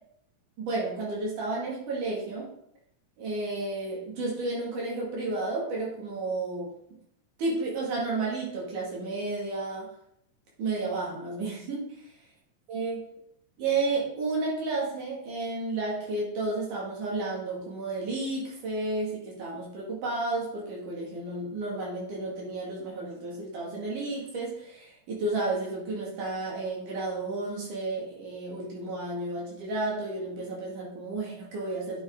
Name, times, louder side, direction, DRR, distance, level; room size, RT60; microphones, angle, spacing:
voice 1, 0.6-2.5 3.2-6.7 7.4-9.9 10.6-12.0 12.7-13.0 13.6-32.0, right 2 dB, 85° right, -4 dB, 3.8 m, -32 dB
9.1 x 5.6 x 3.8 m, 0.73 s
omnidirectional pair, 3.5 m